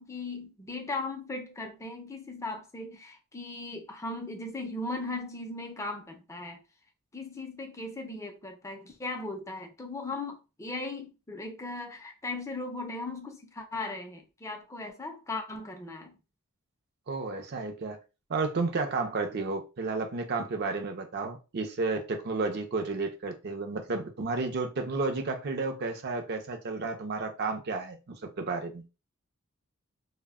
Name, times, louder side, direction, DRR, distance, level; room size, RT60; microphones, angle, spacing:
voice 1, 0.0-6.6 7.1-16.2, left 2 dB, 15° left, 0.4 m, -38 dB
voice 2, 17.1-18.0 18.3-28.8, right 3 dB, 50° right, 0.5 m, -32 dB
2.1 x 2.0 x 3.4 m
head